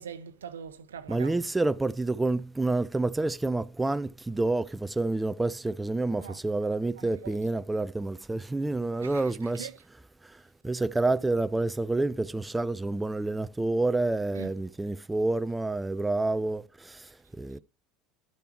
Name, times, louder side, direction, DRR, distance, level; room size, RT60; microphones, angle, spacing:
voice 1, 0.0-1.5 6.2-6.4 7.0-7.4 9.0-9.9 14.3-14.5, right 7 dB, 80° right, 0.8 m, -43 dB
voice 2, 1.1-9.7 10.6-16.6 17.4-17.6, right 2 dB, 10° right, 0.4 m, -28 dB
11.5 x 6.8 x 2.9 m
hypercardioid pair, 75°, 0 cm